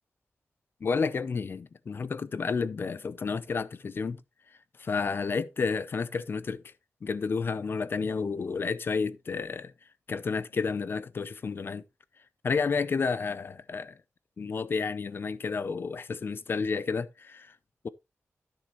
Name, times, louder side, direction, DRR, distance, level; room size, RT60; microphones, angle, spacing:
voice 1, 0.8-4.2 4.8-6.6 7.0-9.7 10.1-11.8 12.4-14.0 14.4-17.5, left 5 dB, 50° left, 0.6 m, -31 dB
13.0 x 6.5 x 3.1 m
wide cardioid pair, 150°, 5 cm